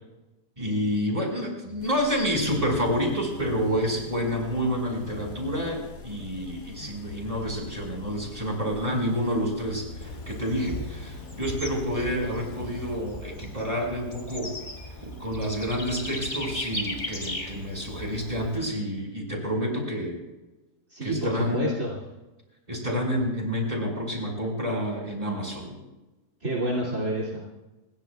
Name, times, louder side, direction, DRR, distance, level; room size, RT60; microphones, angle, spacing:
voice 1, 0.6-14.5 15.0-20.2 21.0-21.7 22.7-25.8, equal, 20° right, 0 dB, 5.7 m, -29 dB
sound 1, 1.8-13.7, left 3 dB, 85° left, 2.2 m, -43 dB
Bird / Insect, 10.0-18.6, left 1 dB, 30° left, 2.3 m, -37 dB
voice 2, 20.9-22.0 26.4-27.4, right 1 dB, 50° right, -4 dB, 3.0 m, -28 dB
27.5 x 22.0 x 2.4 m, 1.1 s
omnidirectional pair, 1.7 m